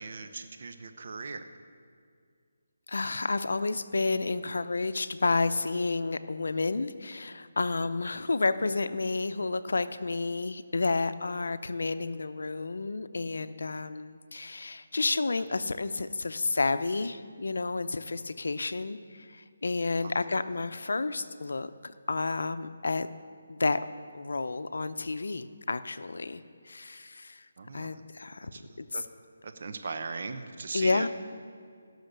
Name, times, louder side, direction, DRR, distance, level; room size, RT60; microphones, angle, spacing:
voice 1, 0.0-1.5 8.6-8.7 20.0-20.1 27.6-28.0 28.5-29.0 29.4-31.1, right 4 dB, 55° right, 8 dB, 0.8 m, -39 dB
voice 2, 2.9-23.1 23.5-23.8 24.1-27.5 27.7-28.5 28.8-28.9 30.7-31.1, left 3 dB, 80° left, 12 dB, 0.6 m, -30 dB
16.5 x 6.5 x 6.7 m, 2.2 s
hypercardioid pair, 160°, 0 cm